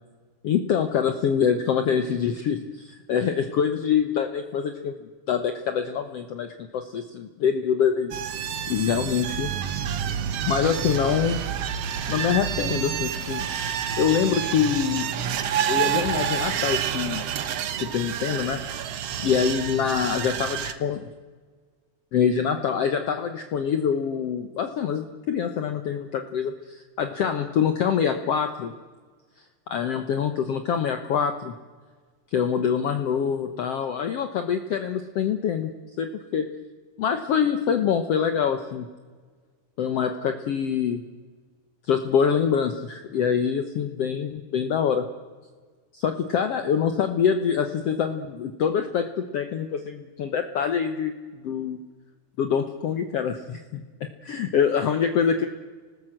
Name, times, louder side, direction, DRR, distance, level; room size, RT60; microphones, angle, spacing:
voice 1, 0.4-8.2 8.7-9.5 10.5-11.4 12.1-13.5 14.0-15.1 15.7-17.2 17.8-18.6 18.9-21.0 22.1-28.7 29.7-31.5 32.3-35.7 36.0-36.1 36.3-36.5 37.0-38.9 39.8-41.0 41.9-45.1 45.9-51.1 51.4-51.8 52.4-53.8 54.2-55.5, left 7 dB, 60° left, 7 dB, 1.7 m, -25 dB
sound 1, 8.1-20.7, right 9 dB, 60° right, 1.8 m, -29 dB
sound 2, 10.7-16.4, right 8 dB, 85° right, 3.1 m, -45 dB
26.5 x 19.5 x 7.8 m, 1.5 s
omnidirectional pair, 3.8 m